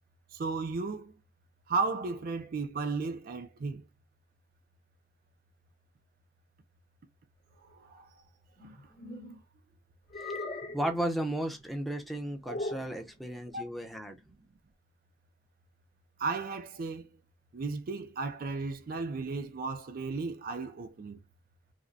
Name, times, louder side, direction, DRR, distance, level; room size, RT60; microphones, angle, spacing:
voice 1, 0.3-1.1 1.7-3.8 7.7-8.1 13.5-13.7 16.2-17.1 17.5-21.2, right 4 dB, 50° right, 0.4 m, -34 dB
sound 1, 8.6-9.4 10.1-11.0 12.4-13.0, left 2 dB, 55° left, 1.4 m, -38 dB
voice 2, 10.7-14.2, right 1 dB, ahead, 0.6 m, -34 dB
5.0 x 2.1 x 2.6 m
head